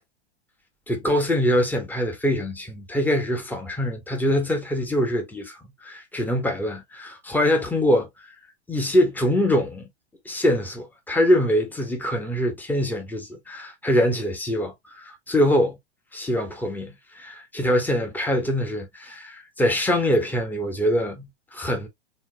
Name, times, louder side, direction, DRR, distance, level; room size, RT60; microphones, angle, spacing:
voice 1, 0.9-8.1 8.7-9.9 10.3-15.8 16.1-21.9, equal, 5° left, 1.6 m, -24 dB
4.4 x 3.7 x 3.1 m
hypercardioid pair, 105°, 33 cm